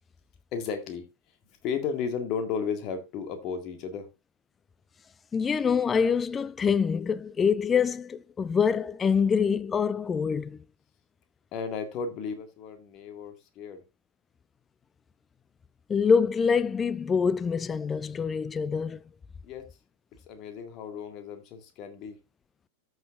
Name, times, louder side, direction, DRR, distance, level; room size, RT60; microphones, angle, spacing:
voice 1, 0.5-1.1 1.6-4.1 11.5-13.8 19.4-19.7 20.3-22.2, left 6 dB, 40° left, 1.9 m, -34 dB
voice 2, 5.3-10.6 15.9-19.0, left 6 dB, 20° left, 0.4 m, -25 dB
13.5 x 6.5 x 2.5 m
figure-of-eight pair, 90°, 0 cm